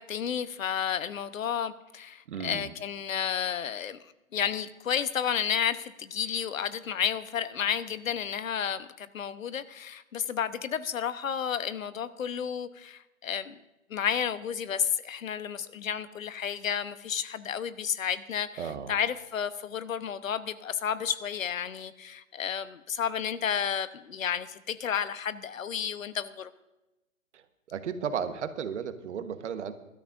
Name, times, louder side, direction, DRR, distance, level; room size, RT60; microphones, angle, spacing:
voice 1, 0.0-4.0 4.3-13.6 13.9-26.5, left 8 dB, 70° left, 13 dB, 1.0 m, -31 dB
voice 2, 2.3-2.7 18.6-18.9 27.7-29.7, right 7 dB, 55° right, 10 dB, 1.2 m, -34 dB
21.5 x 13.0 x 2.5 m, 0.97 s
hypercardioid pair, 140°, 41 cm